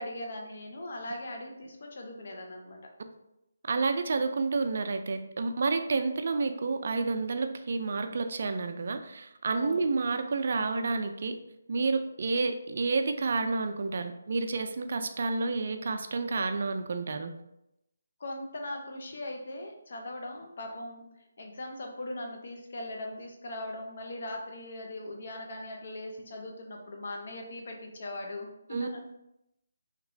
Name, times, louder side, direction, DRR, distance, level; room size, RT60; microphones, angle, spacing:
voice 1, 0.0-2.8 9.5-9.8 18.2-21.0 21.4-29.0, left 1 dB, 55° left, 2 dB, 0.6 m, -40 dB
voice 2, 3.7-11.4 11.7-17.3 28.7-28.9, right 3 dB, 55° right, 7 dB, 0.3 m, -30 dB
2.9 x 2.9 x 2.6 m, 0.84 s
figure-of-eight pair, 150°, 0 cm